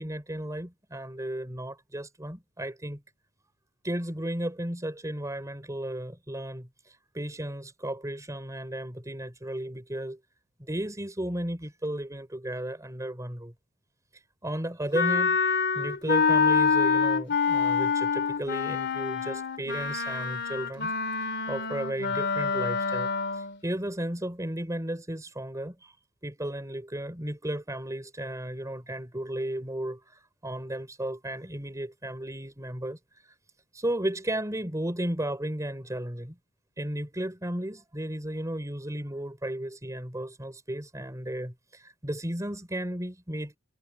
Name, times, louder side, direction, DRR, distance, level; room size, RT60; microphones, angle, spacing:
voice 1, 0.0-3.0 3.8-10.2 10.6-13.5 14.4-15.4 15.7-20.9 21.5-25.9 26.2-33.0 33.7-36.4 36.8-43.6, right 1 dB, 15° right, 4.3 m, -34 dB
Wind instrument woodwind instrument, 14.9-23.6, left 5 dB, 55° left, 3.0 m, -26 dB
head